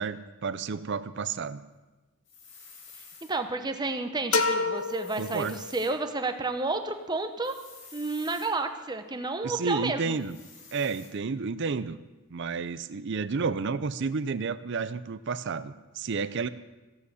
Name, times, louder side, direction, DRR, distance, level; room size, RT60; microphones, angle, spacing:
voice 1, 0.0-1.7 5.2-5.6 9.4-10.4 10.7-12.0 12.3-16.5, right 5 dB, 55° right, 14 dB, 0.5 m, -31 dB
sound 1, 2.3-3.3 4.7-5.9 7.4-8.5 10.2-11.1, left 5 dB, 60° left, 2.7 m, -49 dB
voice 2, 3.3-7.5 7.9-10.2, right 3 dB, 20° right, 7 dB, 0.8 m, -31 dB
sound 2, 4.3-6.1, left 4 dB, 75° left, 0.9 m, -29 dB
14.5 x 8.4 x 6.3 m, 1.1 s
head